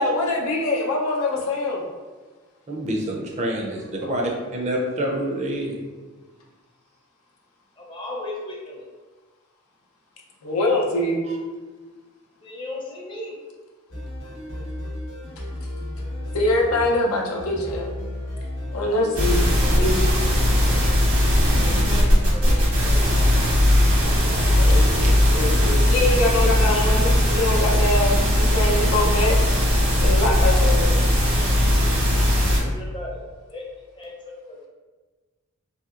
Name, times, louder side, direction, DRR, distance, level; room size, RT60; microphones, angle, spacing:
voice 1, 0.0-1.8 10.4-11.2 16.3-17.9 18.7-20.1 24.3-29.4 29.8-30.9, left 2 dB, 90° left, -1 dB, 0.6 m, -24 dB
voice 2, 2.7-5.8 11.3-11.4 20.0-20.1 25.0-25.1, right 1 dB, 35° right, 0 dB, 0.4 m, -27 dB
voice 3, 3.8-4.3 7.8-8.8 12.4-13.4 21.4-23.3 23.6-24.5 32.3-33.2 33.5-33.7 34.0-34.7, left 1 dB, 25° left, -3 dB, 0.5 m, -37 dB
sound 1, 13.9-24.9, left 1 dB, 65° left, 0.8 m, -34 dB
sound 2, 19.1-32.6, left 1 dB, 85° right, 1.1 m, -19 dB
2.8 x 2.7 x 2.4 m, 1.3 s
head